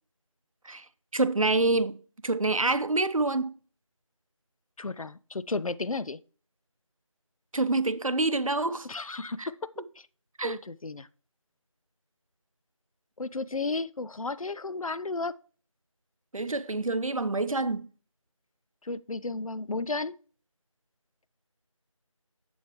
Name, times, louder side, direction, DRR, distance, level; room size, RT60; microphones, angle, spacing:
voice 1, 1.1-2.0 2.2-3.5 7.5-8.9 9.4-9.5 10.4-10.6 16.3-17.9, right 2 dB, 80° right, 0.8 m, -27 dB
voice 2, 4.8-6.2 8.8-9.5 10.4-11.1 13.2-15.4 18.8-20.2, left 3 dB, 90° left, 0.5 m, -33 dB
7.9 x 7.2 x 3.0 m
figure-of-eight pair, 175°, 17 cm